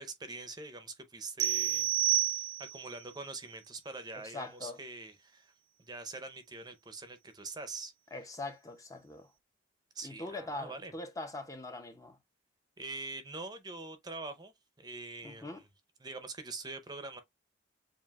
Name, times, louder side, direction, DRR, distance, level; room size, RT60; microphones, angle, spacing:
voice 1, 0.0-5.5 5.9-7.9 9.9-10.9 12.8-15.7 16.0-17.2, right 3 dB, 20° right, 0.7 m, -44 dB
sound 1, 1.4-2.9, right 13 dB, 90° right, 0.4 m, -29 dB
voice 2, 4.1-4.8 8.1-9.3 10.0-12.2 15.2-15.6, left 2 dB, 15° left, 0.6 m, -42 dB
7.3 x 2.6 x 2.4 m
head